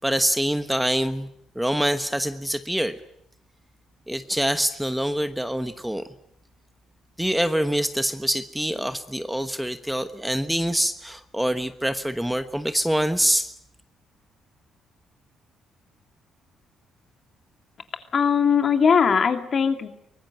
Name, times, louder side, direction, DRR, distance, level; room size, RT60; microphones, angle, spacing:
voice 1, 0.0-1.3 1.5-2.9 4.1-6.0 7.2-13.5, equal, 5° right, 10 dB, 1.2 m, -25 dB
voice 2, 18.1-19.9, left 6 dB, 45° left, 7 dB, 2.6 m, -20 dB
24.0 x 20.0 x 9.2 m, 0.72 s
cardioid pair, 100°, 0 cm